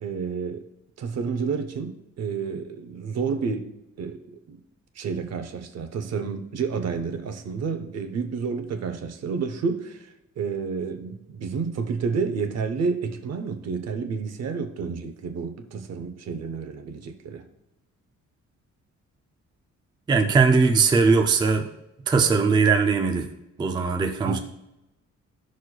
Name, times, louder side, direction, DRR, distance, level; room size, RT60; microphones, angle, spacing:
voice 1, 0.0-0.6 1.0-4.6 4.9-17.4 24.2-24.4, right 5 dB, 60° right, 0.7 m, -30 dB
voice 2, 20.1-21.7 22.1-23.3 23.6-24.4, right 4 dB, 15° right, 0.3 m, -20 dB
11.5 x 6.2 x 2.3 m
wide cardioid pair, 170°, 29 cm